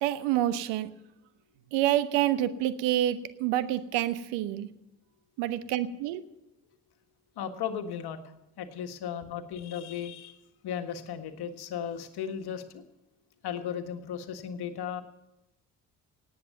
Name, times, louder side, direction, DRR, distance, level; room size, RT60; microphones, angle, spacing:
voice 1, 0.0-0.9 1.7-4.7 5.4-6.2, right 13 dB, 70° right, 14 dB, 1.1 m, -27 dB
voice 2, 7.4-8.2 8.6-10.4 10.6-12.8 13.4-15.0, left 8 dB, 55° left, 7 dB, 1.7 m, -36 dB
18.0 x 8.4 x 6.8 m, 0.89 s
hypercardioid pair, 50°, 45 cm